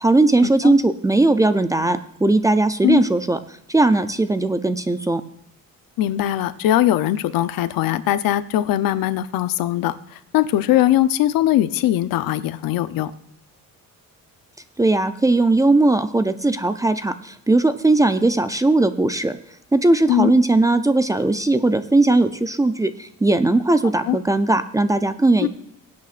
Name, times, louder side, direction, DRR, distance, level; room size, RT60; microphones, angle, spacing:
voice 1, 0.0-3.4 3.7-5.2 14.8-19.4 19.7-25.5, right 2 dB, 10° right, 11 dB, 0.4 m, -18 dB
voice 2, 6.0-13.1 20.1-20.3 24.1-24.2 25.4-25.5, left 13 dB, 90° left, 13 dB, 0.7 m, -20 dB
22.0 x 8.5 x 2.5 m, 0.76 s
cardioid pair, 150°, 34 cm